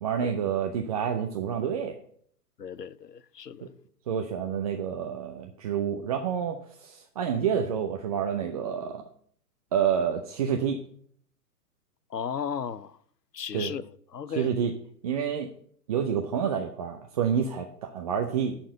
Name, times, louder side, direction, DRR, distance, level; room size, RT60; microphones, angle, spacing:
voice 1, 0.0-2.0 3.6-3.7 4.1-9.0 9.7-10.8 13.5-13.7 14.4-14.7 15.0-15.5 15.9-18.6, right 8 dB, 25° right, 0.5 m, -28 dB
voice 2, 2.6-3.7 12.1-13.0 13.3-13.8 14.1-14.5, left 7 dB, 90° left, 0.6 m, -35 dB
11.0 x 4.4 x 6.6 m
figure-of-eight pair, 115°, 47 cm